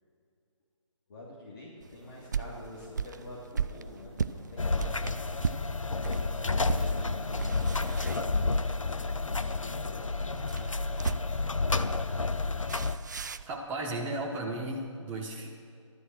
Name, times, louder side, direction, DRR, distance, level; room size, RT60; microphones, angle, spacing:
voice 1, 1.1-5.1 5.8-11.0 11.7-12.7 13.1-13.5, left 2 dB, 45° left, -6 dB, 3.0 m, -48 dB
sound 1, 1.8-6.2 6.7-6.9 7.3-8.8 10.3-11.5 12.7-13.5, right 6 dB, 35° right, 0.4 m, -35 dB
sound 2, 2.0-10.5, equal, 10° left, 3.1 m, -53 dB
sound 3, 4.6-13.0, left 3 dB, 80° left, 0.8 m, -30 dB
voice 2, 13.4-15.5, right 2 dB, 10° right, -3 dB, 1.0 m, -35 dB
14.5 x 13.0 x 6.1 m, 2.4 s
figure-of-eight pair, 150°, 16 cm